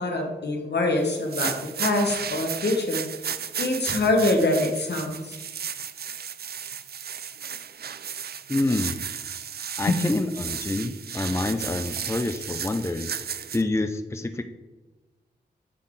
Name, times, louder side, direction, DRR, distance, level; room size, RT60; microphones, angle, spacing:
voice 1, 0.0-3.0 3.5-5.4 9.9-10.0, left 2 dB, 65° left, 2 dB, 1.3 m, -24 dB
sound 1, 1.1-13.6, right 8 dB, 60° right, 0.4 m, -34 dB
voice 2, 8.5-9.0 9.8-13.1 13.5-14.4, left 2 dB, 15° left, 8 dB, 0.5 m, -27 dB
8.2 x 3.7 x 3.8 m, 1.2 s
cardioid pair, 45°, 19 cm